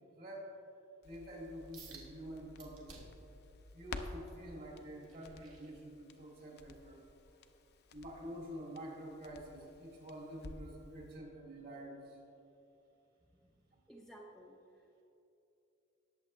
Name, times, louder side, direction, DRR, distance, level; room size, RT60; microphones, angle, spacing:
voice 1, 0.2-0.5 1.0-3.1 3.7-7.0 7.9-12.2, equal, 45° right, -2 dB, 2.7 m, -48 dB
Crackle, 1.0-10.8 11.1-11.2, left 3 dB, 50° left, 0.6 m, -53 dB
sound 1, 1.7-2.1 2.6-3.3 3.8-6.3 6.8-7.1 7.6-7.7, right 5 dB, 75° right, 1.8 m, -57 dB
voice 2, 13.3-13.6 13.9-15.0, right 1 dB, ahead, -2 dB, 0.7 m, -57 dB
19.5 x 7.1 x 3.3 m, 2.8 s
head